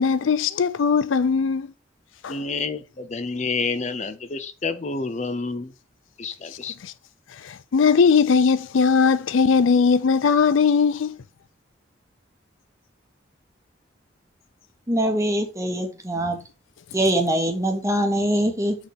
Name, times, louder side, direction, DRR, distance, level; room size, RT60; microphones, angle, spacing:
voice 1, 0.0-1.7 2.2-2.4 6.8-6.9 7.4-11.2, left 5 dB, 90° left, 0.4 m, -19 dB
voice 2, 2.3-5.7 6.2-6.7, left 4 dB, 35° left, 0.6 m, -29 dB
voice 3, 14.9-16.4 16.9-18.8, right 1 dB, 15° right, 1.1 m, -23 dB
6.3 x 3.6 x 5.7 m
head